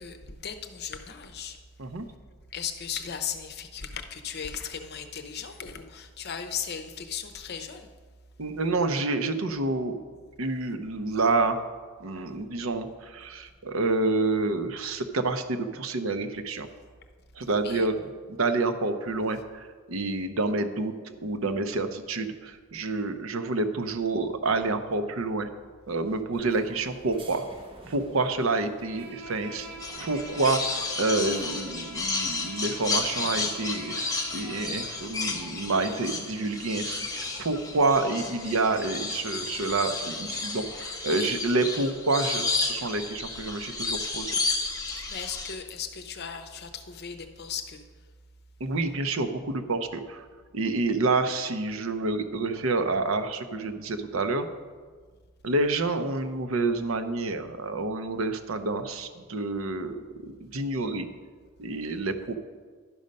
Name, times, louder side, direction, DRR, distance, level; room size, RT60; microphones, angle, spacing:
voice 1, 0.0-1.6 2.5-7.9 17.6-17.9 45.1-47.8, left 7 dB, 50° left, 7 dB, 0.7 m, -36 dB
voice 2, 8.4-10.0 10.4-11.6 12.0-16.7 17.4-18.0 18.3-25.5 25.9-27.4 27.9-29.7 30.0-44.4 48.6-50.2 50.5-54.5 55.4-61.1 61.6-62.4, right 3 dB, 75° right, 8 dB, 0.7 m, -28 dB
sound 1, 26.3-40.8, right 1 dB, 25° right, 1.0 m, -50 dB
Bowed string instrument, 28.8-35.2, right 2 dB, 55° right, 1.0 m, -45 dB
sound 2, 29.8-45.6, left 3 dB, 15° left, 0.9 m, -32 dB
11.5 x 5.4 x 5.2 m, 1.5 s
head